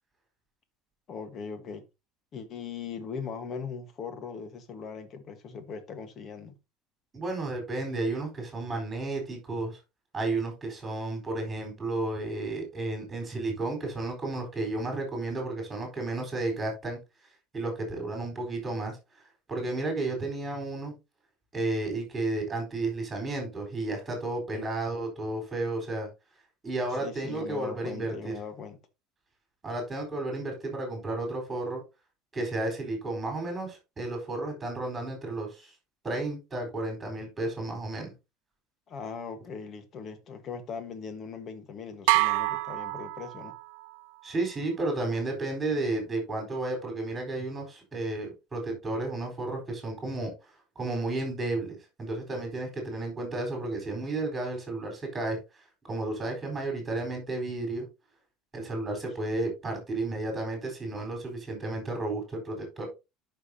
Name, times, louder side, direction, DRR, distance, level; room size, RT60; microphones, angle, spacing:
voice 1, 1.1-1.8 2.3-6.6 24.5-24.7 27.0-28.8 38.9-43.5, left 6 dB, 30° left, 1.4 m, -39 dB
voice 2, 7.1-9.8 10.1-17.0 17.5-19.0 19.5-20.9 21.5-26.1 26.6-28.3 29.6-31.8 32.3-35.7 36.0-38.1 44.2-50.3 50.8-55.4 55.9-57.9 58.5-62.9, right 2 dB, 10° right, 4.2 m, -32 dB
sound 1, 42.1-43.9, right 23 dB, 80° right, 0.4 m, -27 dB
12.0 x 5.8 x 2.8 m
cardioid pair, 165°, 0 cm